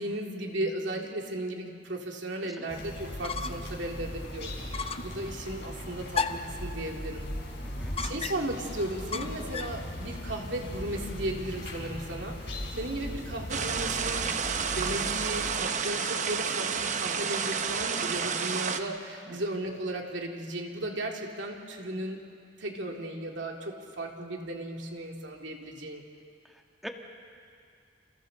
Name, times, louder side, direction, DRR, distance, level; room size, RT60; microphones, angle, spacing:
voice 1, 0.0-4.6 5.0-7.3 8.0-14.3 14.7-22.2 22.6-26.0, right 1 dB, 80° right, 1 dB, 2.6 m, -35 dB
sound 1, 2.7-15.6, left 1 dB, 65° left, 4.5 m, -39 dB
sound 2, 3.2-3.8 4.1-4.2 4.7-5.2 6.1-6.6 8.0-8.6 9.1-9.8, left 5 dB, 30° left, 0.7 m, -34 dB
voice 2, 7.6-8.0 19.3-19.4 26.4-26.9, equal, ahead, 2 dB, 1.5 m, -45 dB
sound 3, 13.5-18.8, right 6 dB, 40° right, 0.9 m, -30 dB
29.0 x 29.0 x 4.0 m, 2.3 s
head